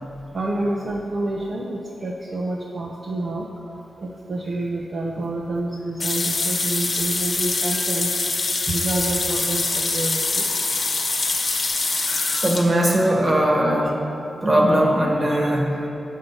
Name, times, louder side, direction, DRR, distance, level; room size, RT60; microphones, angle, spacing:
voice 1, 0.3-8.1 8.7-10.5 11.9-13.9 15.2-15.5, right 2 dB, 50° right, -1 dB, 0.7 m, -29 dB
sound 1, 6.0-12.7, left 3 dB, 45° left, 1.1 m, -24 dB
voice 2, 11.9-14.0 14.4-15.9, right 1 dB, 30° right, 0 dB, 1.4 m, -20 dB
8.5 x 5.5 x 6.9 m, 2.9 s
wide cardioid pair, 125°, 0 cm